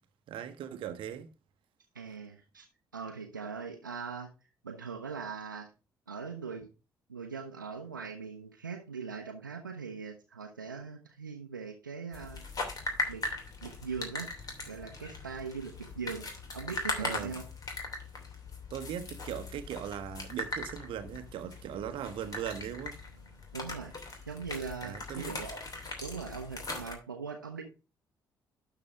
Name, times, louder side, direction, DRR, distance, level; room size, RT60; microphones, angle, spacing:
voice 1, 0.3-1.3 17.0-17.4 18.7-23.0 24.8-25.3, right 9 dB, 55° right, 1.0 m, -39 dB
voice 2, 1.9-2.6 2.9-4.3 4.6-5.7 6.1-6.7 7.1-12.4 13.1-13.2 13.6-14.3 14.7-16.3 16.5-17.4 23.5-23.9 24.3-25.6 26.0-27.6, right 5 dB, 85° right, 0.9 m, -40 dB
sound 1, 12.1-26.9, left 3 dB, 35° left, 2.9 m, -40 dB
12.0 x 4.0 x 4.8 m
figure-of-eight pair, 45°, 10 cm